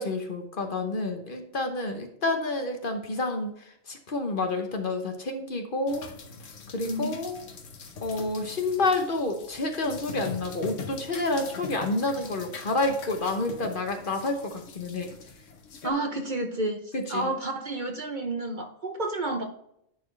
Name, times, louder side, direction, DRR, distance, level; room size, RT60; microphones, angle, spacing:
voice 1, 0.0-6.1 6.7-7.5 8.0-15.1 16.9-17.3, left 2 dB, 45° left, 5 dB, 1.0 m, -29 dB
sound 1, 5.9-15.9, left 4 dB, 80° left, 1.3 m, -42 dB
voice 2, 6.8-7.2 15.8-19.4, right 2 dB, 45° right, 5 dB, 0.8 m, -30 dB
10.5 x 4.2 x 3.2 m, 0.76 s
omnidirectional pair, 1.3 m